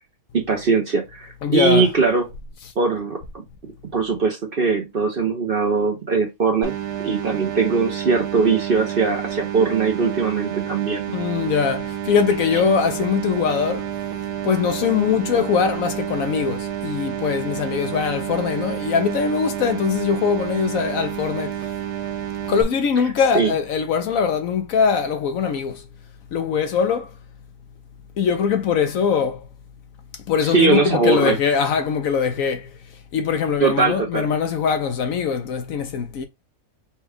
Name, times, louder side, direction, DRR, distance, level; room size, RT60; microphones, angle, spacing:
voice 1, 0.3-2.3 2.8-3.4 3.9-6.7 7.0-11.0 23.3-23.5 30.4-31.4 33.6-34.3, right 4 dB, 45° right, 0.8 m, -20 dB
voice 2, 1.4-1.9 11.1-13.9 14.4-21.6 22.5-25.9 26.3-27.1 28.2-29.5 30.3-32.7 33.1-36.3, left 6 dB, 70° left, 1.0 m, -22 dB
sound 1, 6.6-22.6, right 11 dB, 85° right, 1.2 m, -29 dB
4.4 x 2.3 x 3.4 m
omnidirectional pair, 1.6 m